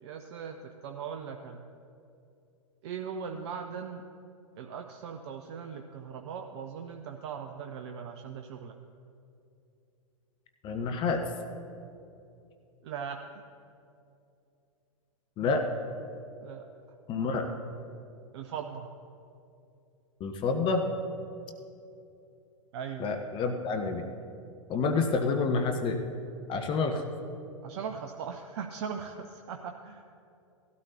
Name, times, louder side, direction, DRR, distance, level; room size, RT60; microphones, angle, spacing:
voice 1, 0.0-1.6 2.8-4.0 4.6-8.8 12.8-13.4 16.4-16.6 18.3-18.9 22.7-23.1 27.6-30.0, right 6 dB, 50° right, 5 dB, 0.7 m, -39 dB
voice 2, 10.6-11.2 15.4-15.6 17.1-17.5 20.2-20.8 23.0-24.0 24.7-26.0 26.5-27.0, left 4 dB, 30° left, 5 dB, 0.9 m, -28 dB
18.5 x 12.5 x 2.8 m, 2.7 s
figure-of-eight pair, 100°, 17 cm